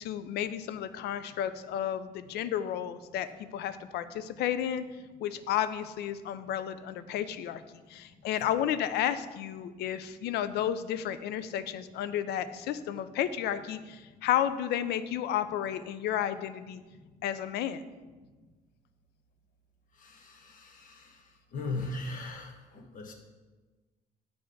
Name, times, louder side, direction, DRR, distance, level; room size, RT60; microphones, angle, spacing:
voice 1, 0.0-4.8 5.2-7.6 7.9-16.8 17.2-17.8, left 10 dB, 75° left, 13 dB, 0.5 m, -32 dB
voice 2, 20.0-21.0 21.5-23.1, left 2 dB, 55° left, 3 dB, 1.2 m, -38 dB
7.8 x 3.5 x 6.5 m, 1.3 s
cardioid pair, 110°, 17 cm